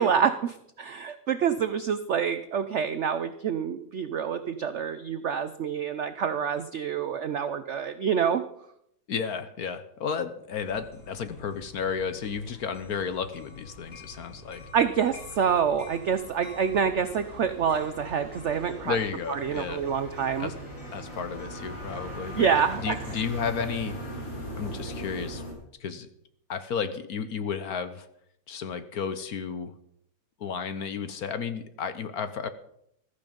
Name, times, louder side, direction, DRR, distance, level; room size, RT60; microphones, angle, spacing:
voice 1, 0.0-8.4 14.7-19.0 19.3-20.5 22.4-23.0, right 7 dB, 65° right, 10 dB, 0.7 m, -27 dB
voice 2, 9.1-14.6 18.8-19.9 20.4-20.6 20.9-24.0 24.6-25.4 25.8-26.1 26.5-28.1 28.5-29.7 30.4-32.5, left 6 dB, 60° left, 11 dB, 1.3 m, -33 dB
sound 1, 10.6-25.5, equal, 40° left, 5.1 m, -41 dB
15.0 x 13.5 x 5.3 m, 0.73 s
omnidirectional pair, 2.0 m